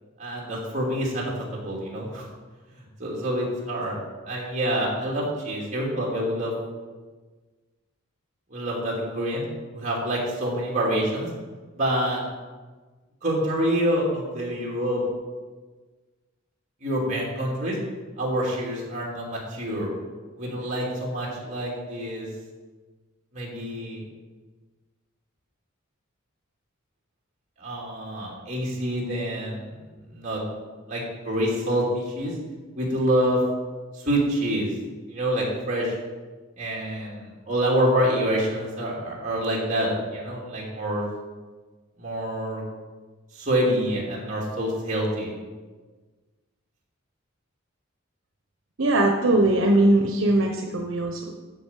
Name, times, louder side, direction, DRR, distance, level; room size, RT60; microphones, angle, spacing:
voice 1, 0.2-2.2 3.0-4.0 4.3-6.5 8.5-9.4 9.7-11.3 11.7-12.2 13.2-15.0 16.8-17.7 18.2-19.9 20.4-22.3 23.3-24.0 27.6-29.6 30.1-30.4 30.9-32.3 32.8-33.4 34.0-34.7 35.1-36.0 36.6-41.1 42.0-42.6 43.3-45.3, equal, 35° right, -4 dB, 2.8 m, -26 dB
voice 2, 48.8-51.3, right 1 dB, 75° right, 3 dB, 1.0 m, -20 dB
9.5 x 7.2 x 7.4 m, 1.3 s
head